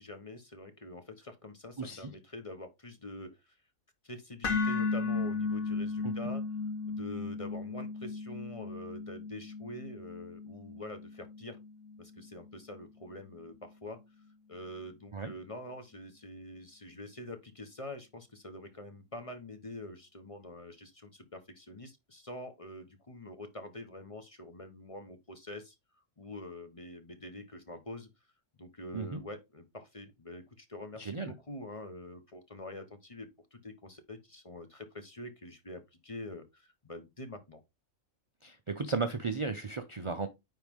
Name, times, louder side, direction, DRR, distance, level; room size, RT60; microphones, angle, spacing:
voice 1, 0.0-3.6 4.0-6.4 6.9-11.6 12.0-14.0 14.5-25.8 26.2-28.1 28.5-37.6, left 1 dB, 25° left, 0.9 m, -45 dB
voice 2, 1.8-2.1 6.0-6.1 15.1-15.3 28.9-29.2 31.0-31.3 38.4-40.3, right 4 dB, 40° right, 0.4 m, -35 dB
sound 1, 4.4-12.5, left 4 dB, 85° left, 2.1 m, -35 dB
9.7 x 3.9 x 3.6 m
omnidirectional pair, 1.4 m